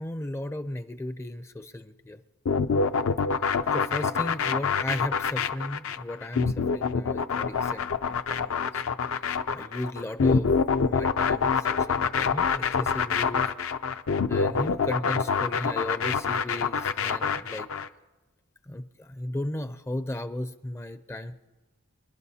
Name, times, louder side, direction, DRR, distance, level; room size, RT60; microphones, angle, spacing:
voice 1, 0.0-2.2 3.7-8.8 9.1-10.5 10.8-13.5 14.3-17.7 18.6-21.5, left 1 dB, 10° left, 10 dB, 0.4 m, -36 dB
sound 1, 2.5-17.9, left 5 dB, 65° left, 0.5 m, -26 dB
27.5 x 11.5 x 2.8 m, 1.2 s
head